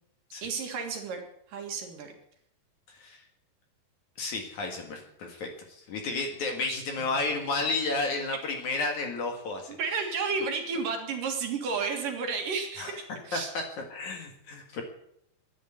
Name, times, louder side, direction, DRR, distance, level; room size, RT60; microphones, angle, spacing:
voice 1, 0.4-1.2 1.5-2.1 6.7-7.1 9.7-13.5, right 5 dB, 60° right, 3 dB, 3.2 m, -32 dB
voice 2, 2.9-3.2 4.2-9.8 12.8-13.0 13.3-14.8, left 3 dB, 55° left, 3 dB, 2.9 m, -32 dB
12.0 x 10.5 x 9.2 m, 0.73 s
omnidirectional pair, 4.7 m